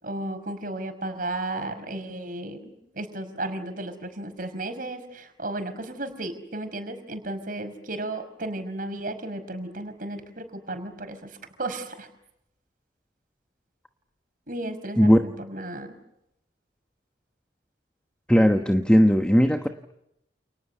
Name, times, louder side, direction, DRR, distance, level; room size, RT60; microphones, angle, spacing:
voice 1, 0.0-12.1 14.5-16.0, right 2 dB, 50° right, 8 dB, 5.5 m, -34 dB
voice 2, 18.3-19.7, equal, 5° left, 5 dB, 1.2 m, -18 dB
30.0 x 29.0 x 6.8 m, 0.83 s
head